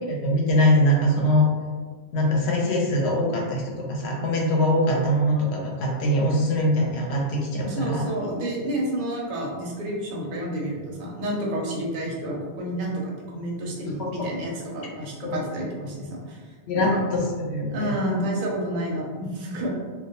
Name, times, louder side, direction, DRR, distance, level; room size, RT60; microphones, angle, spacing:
voice 1, 0.0-1.5 2.1-8.0 14.0-14.3 15.2-15.4 16.7-17.9, equal, 70° left, -1 dB, 0.8 m, -23 dB
voice 2, 7.6-16.4 16.7-17.0 17.7-19.7, right 1 dB, 55° right, -2 dB, 0.6 m, -30 dB
2.2 x 2.1 x 2.7 m, 1.5 s
omnidirectional pair, 1.2 m